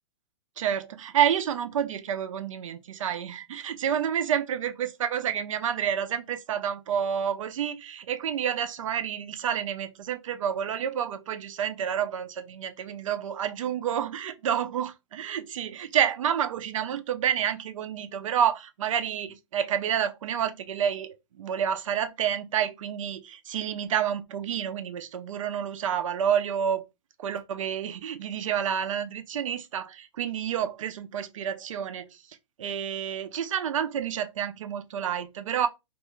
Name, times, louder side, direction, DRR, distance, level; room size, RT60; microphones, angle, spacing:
voice 1, 0.6-26.8 27.2-32.1 32.6-35.7, right 9 dB, 70° right, 0.5 m, -29 dB
2.5 x 2.2 x 3.1 m
hypercardioid pair, 115°, 17 cm